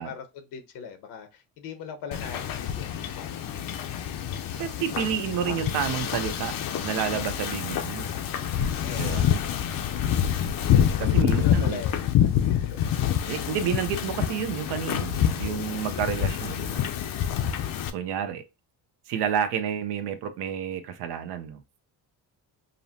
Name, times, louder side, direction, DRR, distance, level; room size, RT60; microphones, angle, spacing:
voice 1, 0.0-3.3 8.8-9.5 11.0-12.8 17.3-17.4, left 6 dB, 90° left, 1.0 m, -41 dB
Wind / Ocean, 2.1-17.9, left 9 dB, 60° left, 0.6 m, -27 dB
voice 2, 4.6-6.5 6.8-8.1 8.9-9.3 11.0-11.8 13.3-16.8 17.9-18.4 19.1-21.6, right 8 dB, 85° right, 0.8 m, -30 dB
5.3 x 2.1 x 2.8 m
cardioid pair, 125°, 39 cm